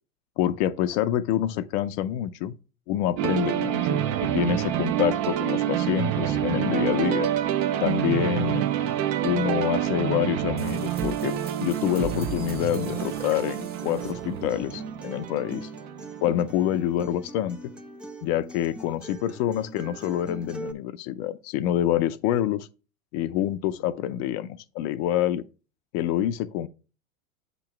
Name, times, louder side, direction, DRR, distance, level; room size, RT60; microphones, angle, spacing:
voice 1, 0.4-2.5 2.9-7.3 7.8-8.6 9.2-11.3 11.6-15.7 16.2-17.6 18.2-22.7 23.1-25.4 25.9-26.7, left 11 dB, 50° left, 0.5 m, -27 dB
sound 1, 3.2-16.9, right 11 dB, 50° right, 0.8 m, -27 dB
sound 2, 10.6-14.7, right 4 dB, 20° right, 1.0 m, -40 dB
Acoustic guitar, 12.7-20.7, right 1 dB, 5° right, 0.3 m, -41 dB
8.3 x 3.0 x 5.9 m
hypercardioid pair, 105°, 43 cm